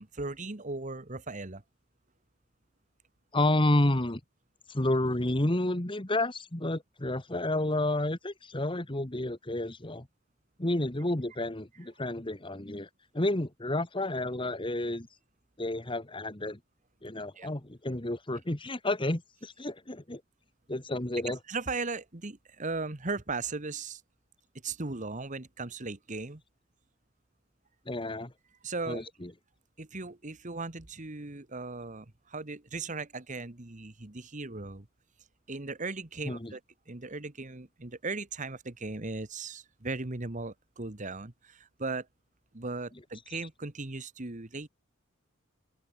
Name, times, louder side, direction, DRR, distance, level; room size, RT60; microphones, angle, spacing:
voice 1, 0.0-1.6 17.3-17.5 21.5-24.0 24.6-26.4 28.6-29.0 29.8-34.9 35.5-36.6 36.9-42.1 42.5-44.7, right 3 dB, 35° right, 1.5 m, -37 dB
voice 2, 3.3-4.2 4.7-10.1 10.6-12.9 13.1-15.1 15.6-16.6 17.0-20.2 20.7-21.4 27.9-28.3 28.9-29.3 36.2-36.5, left 1 dB, 25° left, 1.6 m, -30 dB
open air
head